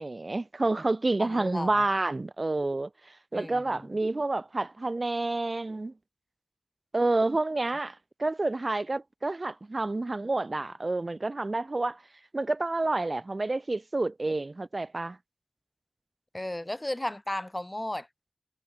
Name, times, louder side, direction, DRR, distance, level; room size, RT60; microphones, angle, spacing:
voice 1, 0.0-2.9 3.3-5.9 6.9-12.0 12.3-15.2, right 2 dB, 40° right, 0.8 m, -29 dB
voice 2, 1.2-1.8 3.3-3.9 16.3-18.1, left 1 dB, 20° left, 1.0 m, -34 dB
wide cardioid pair, 80°, 0 cm